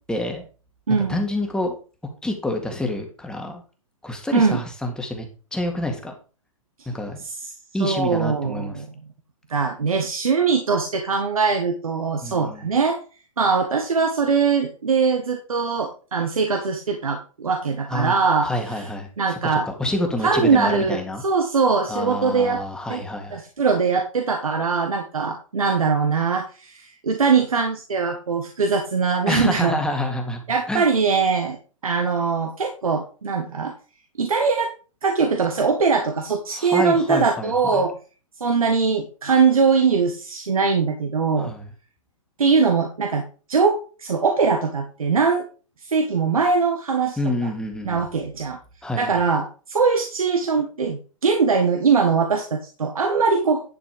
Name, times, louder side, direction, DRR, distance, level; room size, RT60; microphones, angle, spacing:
voice 1, 0.1-0.4 0.9-1.7 2.2-3.6 4.0-5.3 5.5-6.1 6.9-7.2 7.7-8.8 12.2-12.7 17.9-18.2 18.4-19.4 19.7-21.2 21.9-23.4 29.3-30.4 30.7-30.9 36.5-37.8 41.4-41.7 47.2-48.1 48.8-49.2, left 1 dB, 5° left, 3 dB, 2.0 m, -27 dB
voice 2, 0.9-1.2 4.3-4.6 7.2-7.3 7.8-8.9 9.5-13.0 13.4-18.9 19.2-19.6 20.2-22.6 22.9-23.0 23.3-29.8 30.5-31.6 31.8-33.7 34.2-34.7 35.0-37.9 38.4-41.5 42.4-45.4 45.8-47.5 47.8-48.6 49.0-53.6, right 5 dB, 85° right, 4 dB, 1.5 m, -21 dB
11.0 x 5.9 x 4.9 m, 0.36 s
hypercardioid pair, 125°, 18 cm